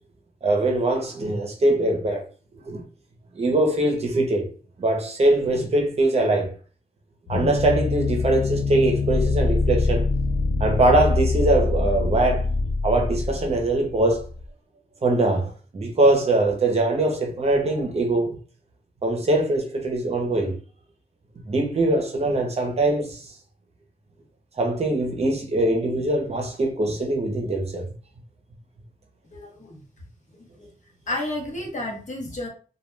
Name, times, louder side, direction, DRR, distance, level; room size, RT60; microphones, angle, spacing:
voice 1, 0.4-2.2 2.7-2.8 3.4-4.4 4.8-6.5 7.3-10.0 10.6-12.5 12.8-14.3 15.0-18.4 19.0-20.5 21.5-23.2 24.6-27.8, right 2 dB, 40° right, 0.6 m, -22 dB
sound 1, 7.3-14.4, left 3 dB, 85° left, 0.4 m, -24 dB
voice 2, 29.3-29.8 30.6-30.7 31.1-32.5, left 1 dB, 50° left, 0.8 m, -31 dB
2.2 x 2.2 x 3.1 m
wide cardioid pair, 145°, 16 cm